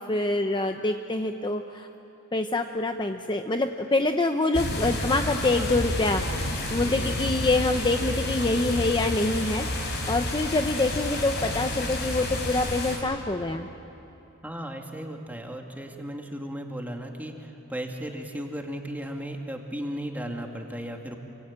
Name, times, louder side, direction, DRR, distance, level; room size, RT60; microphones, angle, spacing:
voice 1, 0.0-1.9 2.3-9.7 10.1-13.7, left 2 dB, 20° left, 6 dB, 0.8 m, -26 dB
sound 1, 4.5-13.0, left 1 dB, 50° left, 5.5 m, -30 dB
voice 2, 5.5-5.8 6.9-7.2 14.4-21.2, equal, 10° right, 2 dB, 2.2 m, -35 dB
27.5 x 24.0 x 8.9 m, 2.8 s
head